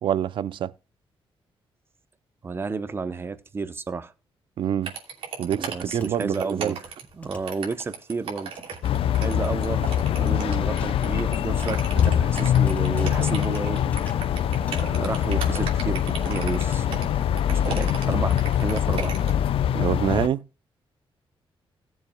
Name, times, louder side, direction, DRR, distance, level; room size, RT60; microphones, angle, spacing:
voice 1, 0.0-0.7 4.6-4.9 5.4-6.8 19.7-20.5, right 10 dB, 60° right, 0.5 m, -26 dB
voice 2, 2.4-4.1 5.5-6.8 7.1-8.6 9.2-9.9 10.1-13.8 14.7-17.2 17.5-19.2, right 4 dB, 25° right, 0.7 m, -31 dB
sound 1, 4.8-19.5, right 6 dB, 90° right, 2.8 m, -36 dB
sound 2, 5.5-6.1 6.6-8.1 8.5-8.8 9.1-9.4 9.9-10.0 10.3-14.2 14.6-15.5, left 1 dB, 20° left, 2.4 m, -46 dB
sound 3, 8.8-20.3, left 10 dB, 75° left, 0.6 m, -23 dB
18.0 x 7.2 x 2.2 m
wide cardioid pair, 170°, 10 cm